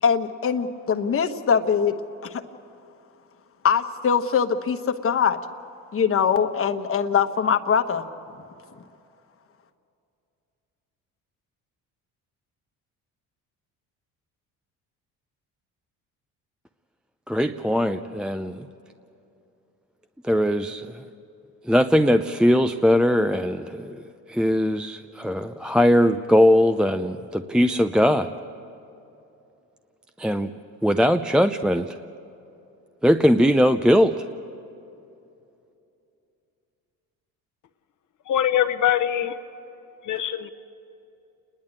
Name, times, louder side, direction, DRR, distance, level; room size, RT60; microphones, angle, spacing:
voice 1, 0.0-1.9 2.2-2.4 3.6-5.4 5.9-8.1, left 7 dB, 40° left, 7 dB, 1.2 m, -22 dB
voice 2, 17.3-18.6 20.3-20.9 21.7-24.0 24.3-28.3 30.2-30.5 30.8-31.9 33.0-34.2, equal, ahead, 9 dB, 0.5 m, -20 dB
voice 3, 38.3-39.4 40.0-40.5, left 11 dB, 55° left, 6 dB, 1.0 m, -23 dB
29.0 x 11.0 x 8.7 m, 2.8 s
supercardioid pair, 90°, 35 cm